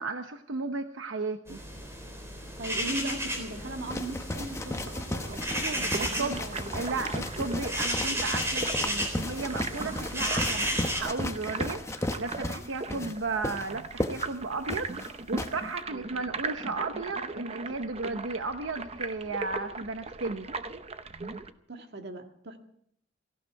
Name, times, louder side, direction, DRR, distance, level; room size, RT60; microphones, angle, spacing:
voice 1, 0.0-1.6 6.0-6.4 6.7-20.5, right 3 dB, 90° right, 7 dB, 0.9 m, -34 dB
bird call at night, 1.5-11.0, equal, 15° right, 3.6 m, -33 dB
voice 2, 2.6-7.1 12.8-13.1 15.9-16.3 21.7-22.6, right 1 dB, 60° right, 4 dB, 1.9 m, -39 dB
sound 1, 3.9-15.5, left 1 dB, 15° left, 0.9 m, -35 dB
sound 2, 5.2-21.5, right 4 dB, 35° right, 0.7 m, -39 dB
17.5 x 15.5 x 4.7 m, 0.70 s
head